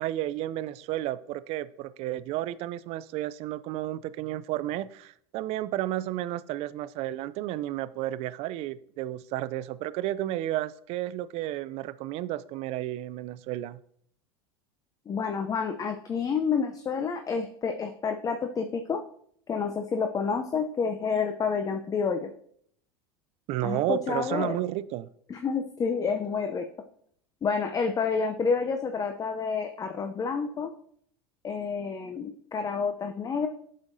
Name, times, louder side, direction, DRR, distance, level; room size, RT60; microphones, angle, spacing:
voice 1, 0.0-13.8 23.5-25.1, right 14 dB, 50° right, 17 dB, 0.4 m, -32 dB
voice 2, 15.1-19.0 19.5-22.3 23.6-24.6 25.3-26.7 27.4-30.7 31.4-33.5, left 5 dB, 25° left, 6 dB, 0.6 m, -29 dB
8.1 x 6.3 x 2.6 m, 0.64 s
hypercardioid pair, 90°, 13 cm